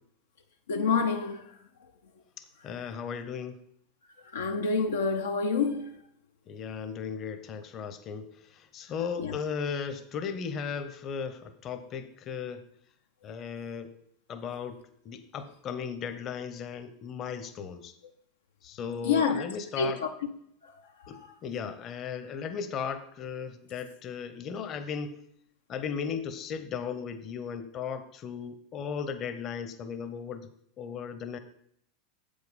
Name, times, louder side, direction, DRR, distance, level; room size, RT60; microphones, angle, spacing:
voice 1, 0.7-1.4 4.3-5.9 9.2-9.3 19.0-19.4 19.8-20.1, left 5 dB, 80° left, 0.7 m, -27 dB
voice 2, 2.4-3.6 6.5-12.6 13.2-13.9 14.3-14.8 15.0-18.0 18.6-20.0 21.1-25.2 25.7-30.5 30.8-31.4, left 6 dB, 40° left, 0.9 m, -36 dB
7.7 x 5.3 x 5.3 m
hypercardioid pair, 90°, 0 cm